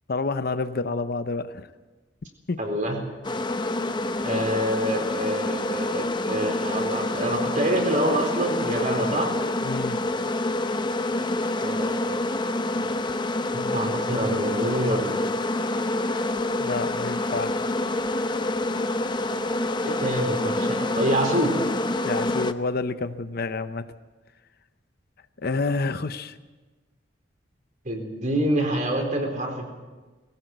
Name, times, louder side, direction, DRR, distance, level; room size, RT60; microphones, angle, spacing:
voice 1, 0.1-1.7 2.5-2.6 9.6-10.0 16.6-17.6 22.0-23.9 25.4-26.4, left 3 dB, 55° left, 11 dB, 0.7 m, -28 dB
voice 2, 2.6-3.0 4.2-9.4 11.6-12.3 13.5-15.1 19.8-21.6 27.8-29.6, right 1 dB, 40° right, 2 dB, 4.2 m, -26 dB
sound 1, 3.2-22.5, left 2 dB, 25° left, 0.7 m, -27 dB
20.0 x 17.5 x 8.0 m, 1.3 s
head